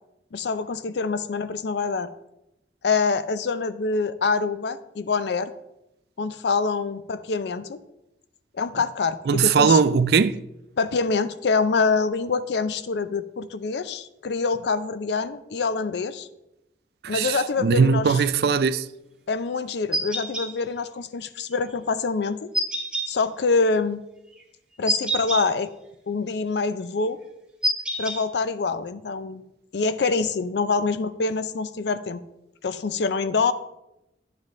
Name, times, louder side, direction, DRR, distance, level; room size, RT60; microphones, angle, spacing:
voice 1, 0.3-2.1 2.8-5.5 6.2-7.8 8.6-9.8 10.8-16.3 17.1-18.2 19.3-22.5 23.1-24.0 24.8-25.7 26.1-27.2 28.0-29.4 29.7-32.2 32.6-33.5, left 4 dB, 70° left, 0.5 m, -25 dB
voice 2, 9.3-10.4 17.0-18.9, right 5 dB, 60° right, 0.4 m, -20 dB
sound 1, 19.9-20.5 22.5-23.1 24.9-25.4 27.6-28.2, right 1 dB, 5° right, 1.0 m, -25 dB
10.0 x 7.4 x 3.2 m
head